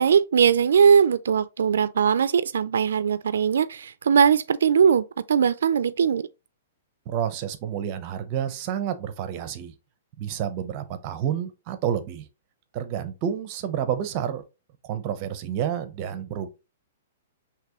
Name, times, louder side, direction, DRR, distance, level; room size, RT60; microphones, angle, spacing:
voice 1, 0.0-6.3, right 7 dB, 85° right, 0.3 m, -20 dB
voice 2, 7.1-9.7 10.2-12.3 12.7-14.4 14.8-16.5, right 9 dB, 35° right, 0.7 m, -29 dB
5.9 x 3.0 x 2.9 m
hypercardioid pair, 160°, 0 cm